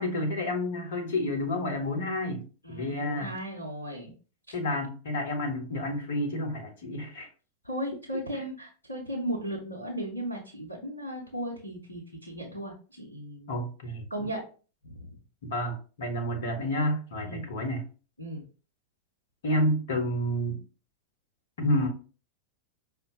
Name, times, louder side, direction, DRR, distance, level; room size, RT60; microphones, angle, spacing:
voice 1, 0.0-3.3 4.5-7.3 13.5-14.0 15.4-17.8 19.4-20.6 21.6-21.9, left 1 dB, 60° left, 3 dB, 1.0 m, -30 dB
voice 2, 2.6-4.1 4.5-4.6 7.6-13.6 14.1-14.4 14.8-15.2 17.2-17.5 18.2-18.4, right 1 dB, 85° left, -3 dB, 0.8 m, -36 dB
5.3 x 2.1 x 2.7 m, 0.37 s
figure-of-eight pair, 90°, 0 cm